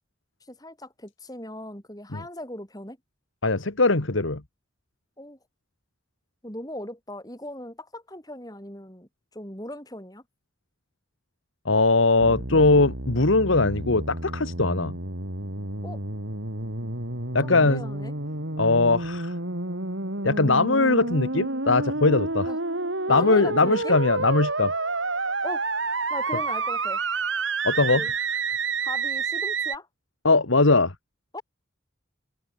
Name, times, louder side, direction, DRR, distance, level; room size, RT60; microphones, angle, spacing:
voice 1, 0.5-3.0 5.2-5.4 6.4-10.2 15.8-16.0 17.4-18.1 22.5-22.6 23.1-24.0 25.4-25.7 26.1-27.0 27.8-28.1 28.8-29.9 31.3-31.4, left 1 dB, 20° left, 5.4 m, -38 dB
voice 2, 3.4-4.4 11.7-15.0 17.3-17.8 18.6-19.3 20.2-22.5 23.1-24.7 27.6-28.0 30.2-30.9, left 3 dB, 85° left, 1.9 m, -21 dB
sound 1, 12.2-29.8, right 3 dB, 80° right, 4.8 m, -29 dB
head